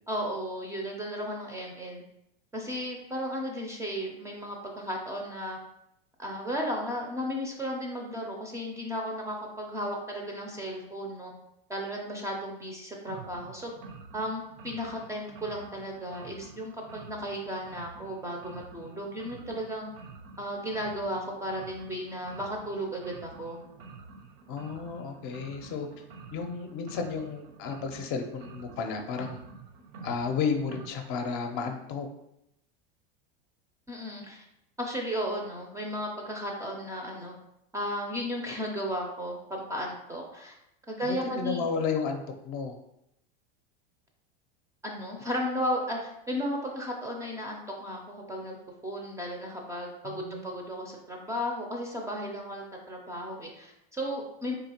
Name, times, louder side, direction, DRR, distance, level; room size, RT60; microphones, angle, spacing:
voice 1, 0.1-2.0 2.5-5.6 6.2-11.3 11.7-13.7 14.1-19.9 20.4-23.6 33.9-34.4 34.8-37.3 37.7-40.6 40.9-41.7 44.8-48.6 48.8-54.5, equal, 10° right, 0 dB, 0.4 m, -34 dB
sound 1, 13.1-30.9, right 4 dB, 65° right, 0.6 m, -48 dB
voice 2, 24.5-25.9 26.3-29.4 30.0-32.1 41.0-42.8 50.0-50.5, left 5 dB, 45° left, 5 dB, 0.6 m, -32 dB
3.8 x 2.9 x 2.8 m, 0.81 s
supercardioid pair, 125°, 29 cm